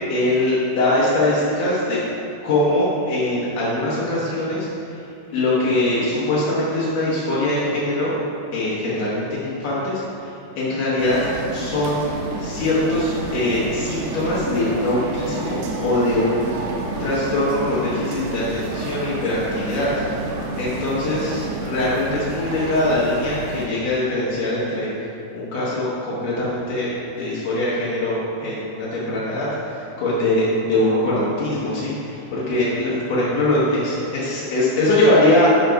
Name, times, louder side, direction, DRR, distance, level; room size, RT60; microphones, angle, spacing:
voice 1, 0.1-2.0 2.4-5.0 5.3-8.2 8.5-11.2 11.5-16.6 17.0-19.9 20.6-24.9 25.3-35.5, left 1 dB, 70° left, -8 dB, 1.6 m, -22 dB
sound 1, 11.0-23.7, right 2 dB, 75° right, 2.3 m, -30 dB
7.3 x 4.7 x 5.1 m, 2.7 s
omnidirectional pair, 4.7 m